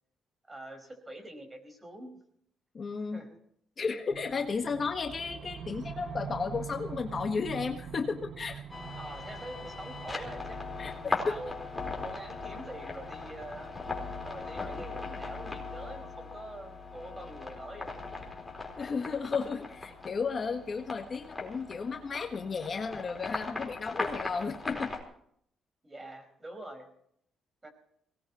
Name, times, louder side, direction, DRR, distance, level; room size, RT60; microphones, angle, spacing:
voice 1, 0.5-2.1 3.1-3.3 9.0-11.5 12.0-13.7 14.2-18.3 25.8-26.9 27.6-27.7, right 1 dB, 20° right, 5 dB, 5.1 m, -45 dB
voice 2, 2.7-3.3 3.8-8.6 10.1-10.3 10.8-11.4 18.8-24.9, left 5 dB, 40° left, 4 dB, 1.5 m, -34 dB
sound 1, 4.1-14.2, right 8 dB, 60° right, 0.7 m, -45 dB
sound 2, 8.7-25.0, left 3 dB, 10° left, 4.3 m, -39 dB
22.5 x 18.5 x 3.1 m, 0.67 s
cardioid pair, 90°, 0 cm